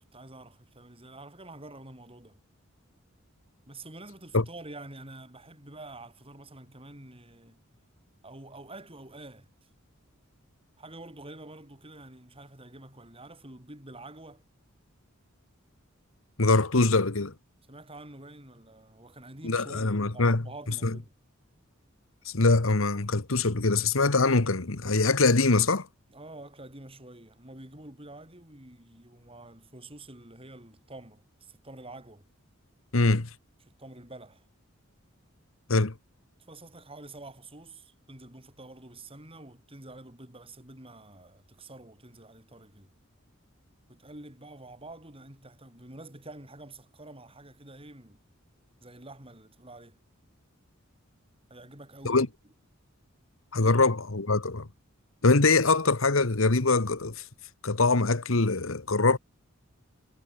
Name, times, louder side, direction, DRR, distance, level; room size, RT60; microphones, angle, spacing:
voice 1, 0.0-2.4 3.7-7.6 8.2-9.7 10.8-14.4 17.7-21.1 26.1-32.3 33.7-34.5 36.4-42.9 43.9-48.2 48.8-50.0 51.5-52.3 53.6-53.9, right 2 dB, 25° right, 7.7 m, -47 dB
voice 2, 16.4-17.3 19.4-20.4 20.8-20.9 22.2-25.9 32.9-33.3 35.7-35.9 52.0-52.3 53.5-54.7 55.2-57.2 57.6-59.2, left 3 dB, 75° left, 1.5 m, -23 dB
head